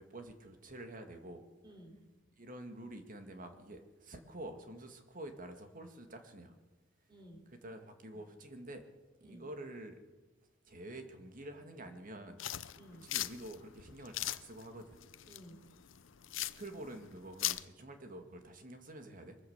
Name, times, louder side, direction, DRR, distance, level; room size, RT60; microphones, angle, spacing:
voice 1, 0.0-1.4 2.4-6.6 7.6-8.8 9.2-10.0 10.6-15.1 16.4-19.4, right 1 dB, 45° right, 6 dB, 2.1 m, -48 dB
voice 2, 1.6-2.1 7.1-7.5 8.1-8.2 9.2-9.5 12.8-13.1 15.3-15.7, equal, 25° right, 4 dB, 3.6 m, -55 dB
sound 1, 12.4-17.6, left 14 dB, 80° left, 0.7 m, -39 dB
22.5 x 14.5 x 8.1 m, 1.2 s
head